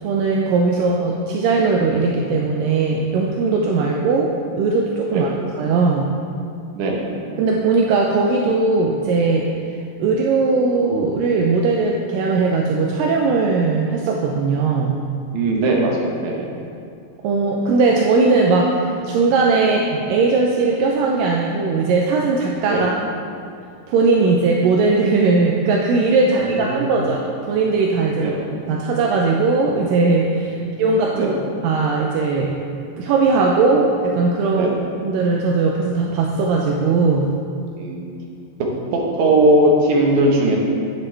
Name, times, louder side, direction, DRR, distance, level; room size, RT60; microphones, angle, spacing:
voice 1, 0.0-5.3 5.6-6.1 7.4-9.5 10.0-15.0 17.2-23.0 23.9-28.3 28.7-31.3 31.6-32.6 33.0-34.7 35.0-37.4, right 4 dB, 80° right, -1 dB, 2.3 m, -19 dB
voice 2, 6.7-7.1 15.3-16.5 22.7-22.9 26.2-27.0 28.2-28.5 31.1-31.4 34.5-34.8 37.8-38.1 38.6-40.6, right 1 dB, 65° right, -1 dB, 2.5 m, -19 dB
9.9 x 9.3 x 3.4 m, 2.4 s
omnidirectional pair, 4.0 m